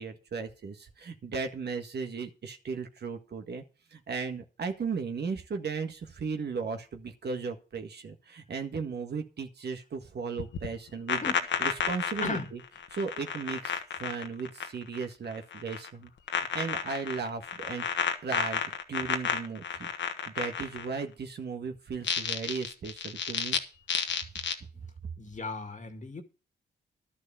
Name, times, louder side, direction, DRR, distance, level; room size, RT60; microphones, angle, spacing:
voice 1, 0.0-3.6 3.9-11.2 11.6-12.6 12.9-16.1 16.5-17.9 18.2-19.9 20.3-23.6, right 5 dB, 60° right, 1.8 m, -36 dB
sound 1, 10.4-15.0 15.3-15.9 16.3-21.0 21.9-23.6 23.9-24.5, left 7 dB, 75° left, 1.3 m, -31 dB
voice 2, 12.2-12.5 25.2-26.2, left 3 dB, 40° left, 1.9 m, -36 dB
11.5 x 6.3 x 7.0 m
cardioid pair, 65°, 20 cm